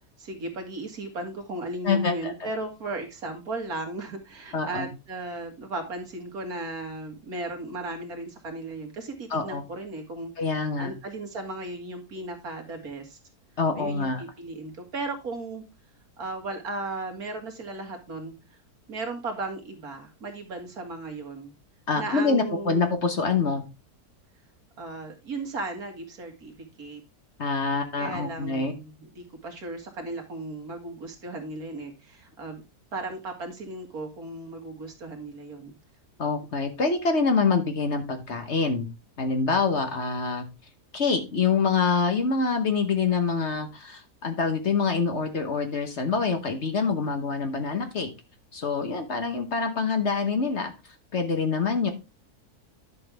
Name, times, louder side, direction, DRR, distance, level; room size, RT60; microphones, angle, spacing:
voice 1, 0.2-13.2 13.8-15.6 16.2-18.3 18.9-21.5 21.9-22.9 24.8-27.0 27.7-32.6 32.9-35.7, right 2 dB, 70° right, 3 dB, 2.4 m, -36 dB
voice 2, 1.8-2.5 4.5-4.9 9.3-9.6 10.4-10.9 13.6-14.2 21.9-23.6 27.4-28.7 36.2-38.9 39.2-40.5 40.9-48.1 48.5-50.7 51.1-51.9, left 4 dB, 50° left, 6 dB, 1.3 m, -25 dB
10.5 x 6.2 x 3.4 m, 0.27 s
omnidirectional pair, 1.7 m